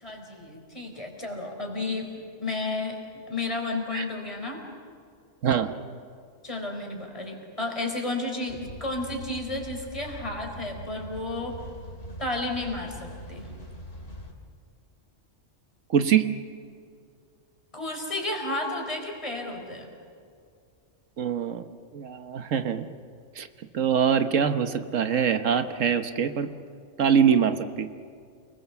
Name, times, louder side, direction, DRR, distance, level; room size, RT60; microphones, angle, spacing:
voice 1, 0.0-2.1 2.4-3.0 3.3-4.6 6.4-11.6 12.2-13.5 17.7-19.9, left 2 dB, 25° left, 2 dB, 4.4 m, -32 dB
voice 2, 5.4-5.7 15.9-16.4 21.2-21.7 21.9-22.9 23.4-23.5 23.7-26.5 27.0-27.9, right 7 dB, 80° right, 9 dB, 1.4 m, -24 dB
sound 1, 8.5-14.3, equal, 50° left, 3.7 m, -42 dB
29.0 x 21.5 x 7.1 m, 2.3 s
omnidirectional pair, 1.3 m